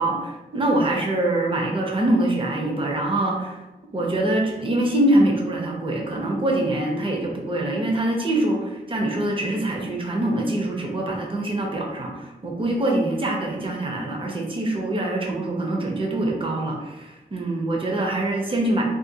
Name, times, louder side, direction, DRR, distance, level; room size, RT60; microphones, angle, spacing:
voice 1, 0.0-3.6 3.9-18.8, right 1 dB, 30° right, 0 dB, 0.5 m, -24 dB
2.4 x 2.2 x 2.7 m, 1.1 s
wide cardioid pair, 125°, 17 cm